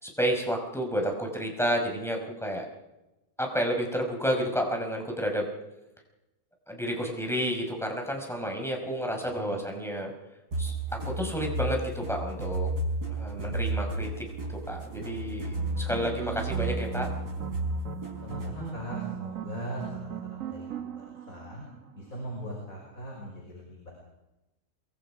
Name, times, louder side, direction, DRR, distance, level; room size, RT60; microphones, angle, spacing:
voice 1, 0.0-2.7 3.4-5.5 6.7-10.1 10.6-10.7 11.0-12.7 13.1-17.1, equal, ahead, 2 dB, 5.4 m, -30 dB
voice 2, 9.2-9.6 18.2-21.6 22.0-23.9, equal, 60° left, -1 dB, 6.0 m, -40 dB
sound 1, 10.5-18.7, right 2 dB, 80° right, 5.6 m, -33 dB
sound 2, 15.5-22.1, right 9 dB, 60° right, 1.5 m, -39 dB
27.5 x 23.0 x 5.0 m, 0.98 s
omnidirectional pair, 1.7 m